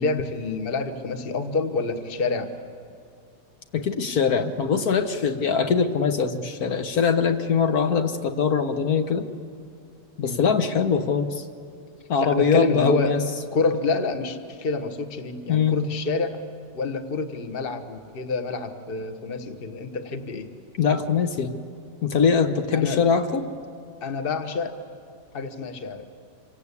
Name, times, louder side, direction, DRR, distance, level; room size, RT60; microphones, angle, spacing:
voice 1, 0.0-2.5 10.2-10.5 12.2-13.2 13.5-16.4 16.7-20.5 22.7-23.0 24.0-24.8 25.3-26.1, left 3 dB, 40° left, 8 dB, 1.4 m, -27 dB
voice 2, 3.7-9.3 10.2-11.4 12.1-13.2 15.5-15.8 20.8-21.6 22.0-23.4, left 6 dB, 70° left, 7 dB, 1.6 m, -22 dB
26.5 x 25.5 x 8.4 m, 2.3 s
omnidirectional pair, 1.7 m